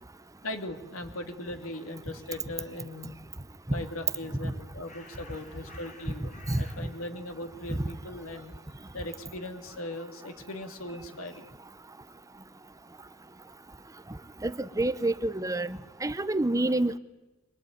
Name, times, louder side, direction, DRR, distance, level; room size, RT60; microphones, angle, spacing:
voice 1, 0.4-3.1 3.7-8.5 8.9-11.5, left 1 dB, 80° left, 2.7 m, -39 dB
Bird, 4.4-10.4, left 2 dB, 35° left, 5.2 m, -56 dB
voice 2, 14.4-17.0, right 2 dB, 15° right, 0.8 m, -28 dB
23.5 x 22.0 x 9.4 m
head